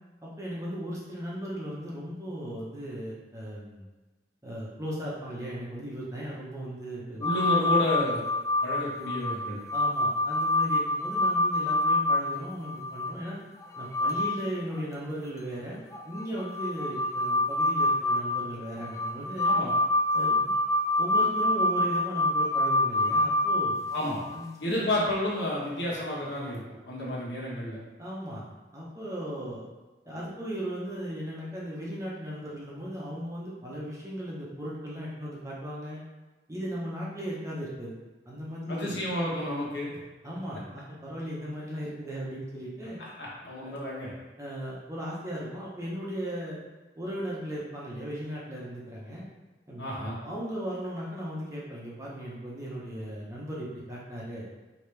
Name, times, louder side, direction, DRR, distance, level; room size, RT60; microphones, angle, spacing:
voice 1, 0.2-3.8 4.4-7.3 9.7-13.4 13.8-15.8 16.1-19.5 20.1-20.5 21.0-23.8 24.3-24.9 28.0-28.4 28.7-29.6 30.0-36.0 36.5-38.0 38.3-39.0 40.2-43.0 43.6-43.7 44.4-46.6 47.0-49.2 49.7-49.9 50.2-54.4, equal, 15° right, -6 dB, 0.8 m, -37 dB
voice 2, 7.2-8.2 8.6-9.6 19.4-19.7 23.9-24.2 24.6-26.6 26.9-27.8 38.7-39.9 43.0-44.1 49.8-50.2, left 1 dB, 75° left, -5 dB, 1.3 m, -30 dB
sound 1, 7.2-13.1 13.6-14.4 14.7-14.8 15.9-24.4 26.5-26.6, left 1 dB, 15° left, 0.3 m, -26 dB
4.9 x 2.9 x 3.3 m, 1.2 s
head